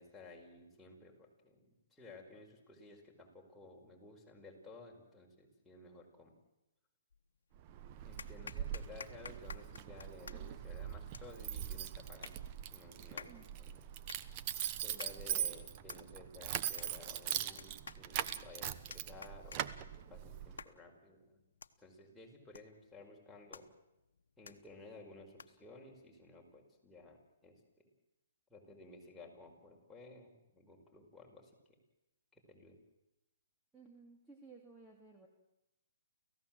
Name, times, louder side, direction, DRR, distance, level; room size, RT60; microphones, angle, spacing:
voice 1, 0.0-6.4 8.0-12.4 12.7-13.8 14.8-21.4 21.8-23.7 24.4-27.6 28.5-31.8 32.3-32.8, left 2 dB, 5° left, -2 dB, 5.1 m, -55 dB
sound 1, 7.1-7.6 8.2-25.7, left 5 dB, 75° left, 1.2 m, -55 dB
Keys jangling, 7.5-20.6, right 11 dB, 35° right, 1.1 m, -41 dB
voice 2, 14.9-15.4 33.7-35.3, right 4 dB, 10° right, 0 dB, 2.8 m, -58 dB
29.5 x 15.5 x 7.7 m, 0.92 s
hypercardioid pair, 135°, 0 cm